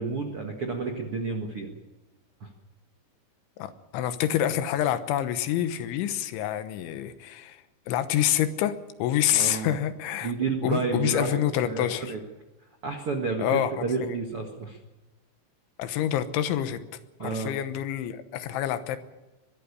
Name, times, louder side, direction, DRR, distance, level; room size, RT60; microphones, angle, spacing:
voice 1, 0.0-1.7 2.4-2.5 9.3-9.7 10.2-12.2 12.8-14.8 17.2-17.5, right 4 dB, 65° right, 2 dB, 1.3 m, -30 dB
voice 2, 3.6-10.3 10.6-12.1 13.4-13.7 14.1-14.2 15.8-16.8 17.2-19.0, left 11 dB, 85° left, 11 dB, 3.5 m, -27 dB
22.5 x 12.5 x 9.6 m, 1.1 s
omnidirectional pair, 5.2 m